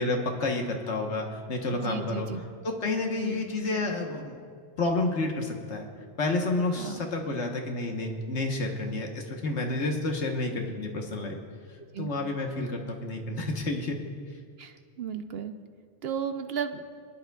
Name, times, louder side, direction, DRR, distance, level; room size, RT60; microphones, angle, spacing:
voice 1, 0.0-2.3 2.6-4.4 4.8-5.9 6.2-11.4 12.0-14.0, left 2 dB, 70° left, 2 dB, 1.4 m, -30 dB
voice 2, 1.7-2.4 3.2-3.4 6.8-7.0 11.9-12.1 14.6-15.5 16.0-16.8, right 7 dB, 65° right, 8 dB, 0.8 m, -34 dB
27.0 x 10.5 x 2.3 m, 2.1 s
omnidirectional pair, 1.2 m